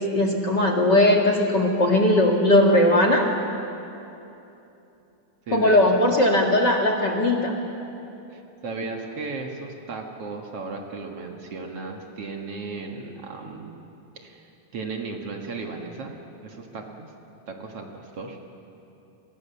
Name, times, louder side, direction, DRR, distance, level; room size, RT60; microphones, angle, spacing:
voice 1, 0.0-3.3 5.5-7.5, left 1 dB, 40° left, 3 dB, 2.0 m, -19 dB
voice 2, 5.5-5.8 8.3-13.9 14.2-14.4 14.7-16.1 16.4-17.1 17.5-18.4, right 4 dB, 50° right, 2 dB, 2.5 m, -35 dB
29.5 x 24.5 x 7.0 m, 2.9 s
omnidirectional pair, 3.7 m